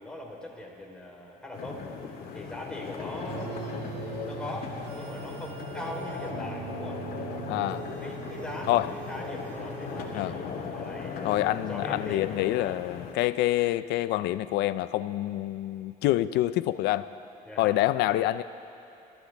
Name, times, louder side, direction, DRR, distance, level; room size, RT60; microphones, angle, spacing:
voice 1, 0.0-1.9 2.3-3.4 4.2-7.0 8.0-8.8 9.1-12.8 17.5-17.8, left 1 dB, 5° left, -3 dB, 3.7 m, -41 dB
sound 1, 1.5-13.1, left 5 dB, 60° left, 2.0 m, -38 dB
sound 2, 3.2-10.7, right 10 dB, 90° right, 0.9 m, -42 dB
voice 2, 7.5-7.9 8.7-8.9 10.1-10.3 11.2-17.1 17.6-18.4, left 15 dB, 85° left, 14 dB, 0.5 m, -26 dB
27.0 x 14.5 x 3.5 m, 2.8 s
cardioid pair, 110°, 17 cm